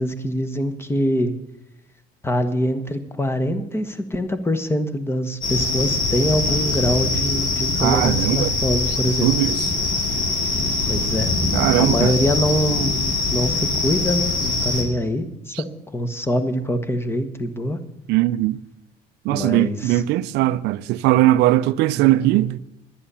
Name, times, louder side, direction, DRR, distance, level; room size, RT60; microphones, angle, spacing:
voice 1, 0.0-1.3 2.2-9.3 10.9-11.3 11.8-15.7 15.9-17.8 19.3-20.0, equal, 15° left, 1.2 m, -24 dB
sound 1, 5.4-14.8, left 3 dB, 50° left, 2.7 m, -23 dB
voice 2, 7.8-8.5 9.2-9.6 11.5-12.1 18.1-18.6 19.3-22.6, right 15 dB, 90° right, 0.5 m, -19 dB
10.5 x 10.0 x 7.0 m
cardioid pair, 110°, 17 cm